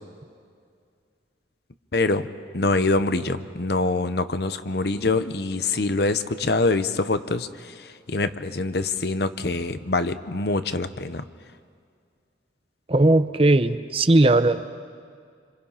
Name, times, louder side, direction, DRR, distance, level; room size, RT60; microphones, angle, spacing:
voice 1, 1.9-2.3 2.5-11.2, left 3 dB, 60° left, 11 dB, 0.9 m, -25 dB
voice 2, 12.9-14.6, right 2 dB, 30° right, 11 dB, 0.7 m, -18 dB
28.0 x 26.0 x 5.7 m, 2.2 s
head